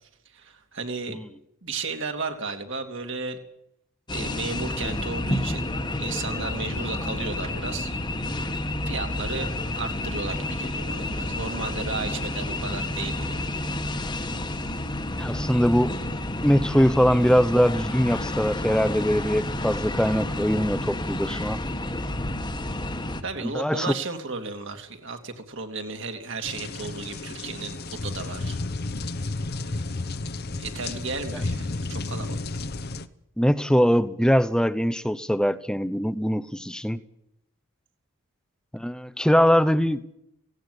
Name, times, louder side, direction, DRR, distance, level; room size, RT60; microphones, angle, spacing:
voice 1, 0.3-1.2 1.6-3.4 4.1-5.7 6.0-7.9 8.9-13.5 23.2-28.6 29.6-30.1 30.6-32.4, right 4 dB, 55° right, 5 dB, 2.8 m, -34 dB
sound 1, 4.1-23.2, left 1 dB, 20° left, 1.4 m, -30 dB
voice 2, 15.2-16.0 16.4-21.6 23.4-23.9 33.4-37.0 38.7-40.0, equal, 5° left, 14 dB, 0.8 m, -22 dB
sound 2, 26.4-33.1, left 2 dB, 45° left, 1.0 m, -32 dB
17.5 x 17.5 x 9.9 m, 0.78 s
head